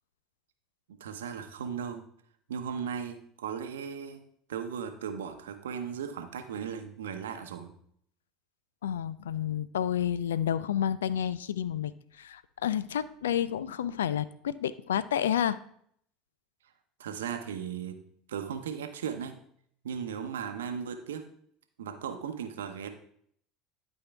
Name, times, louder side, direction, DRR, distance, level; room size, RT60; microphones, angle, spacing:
voice 1, 0.9-2.0 2.5-4.2 4.5-7.7 17.0-18.0 18.3-19.4 19.8-21.3 21.8-22.9, right 7 dB, 85° right, 7 dB, 0.8 m, -37 dB
voice 2, 8.8-15.6, left 10 dB, 85° left, 17 dB, 0.3 m, -30 dB
11.5 x 4.5 x 3.4 m, 0.65 s
hypercardioid pair, 80°, 0 cm